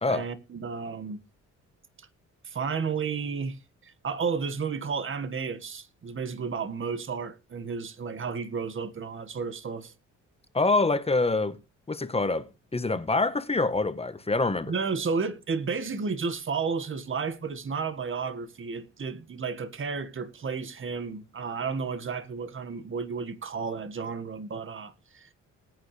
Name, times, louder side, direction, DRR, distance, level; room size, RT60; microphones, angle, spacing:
voice 1, 0.1-1.2 2.4-9.9 14.7-25.3, right 5 dB, 40° right, 1.9 m, -32 dB
voice 2, 10.5-11.6 11.9-14.7, left 3 dB, 20° left, 1.3 m, -26 dB
19.5 x 9.3 x 3.4 m
cardioid pair, 90°, 30 cm